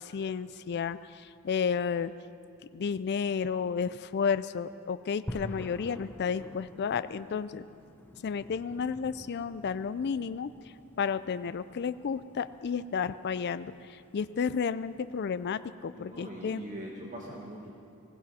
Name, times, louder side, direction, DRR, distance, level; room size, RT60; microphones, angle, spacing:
voice 1, 0.0-2.1 2.7-7.7 8.2-16.6, left 6 dB, 50° left, 14 dB, 0.4 m, -32 dB
sound 1, 5.3-15.5, equal, 10° left, 0.6 m, -48 dB
voice 2, 15.9-17.7, right 1 dB, 35° right, -2 dB, 1.6 m, -42 dB
20.5 x 17.0 x 4.2 m, 2.5 s
head